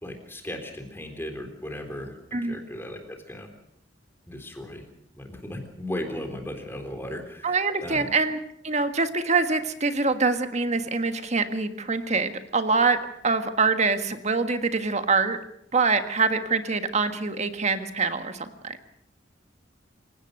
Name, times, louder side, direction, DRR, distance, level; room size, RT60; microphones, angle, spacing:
voice 1, 0.0-2.1 2.5-3.5 4.3-4.8 5.1-8.1, left 1 dB, 10° left, 5 dB, 3.6 m, -36 dB
voice 2, 7.4-8.4 8.6-13.0 13.2-15.4 15.7-18.8, right 4 dB, 35° right, 8 dB, 1.6 m, -24 dB
27.0 x 17.0 x 6.5 m, 0.72 s
head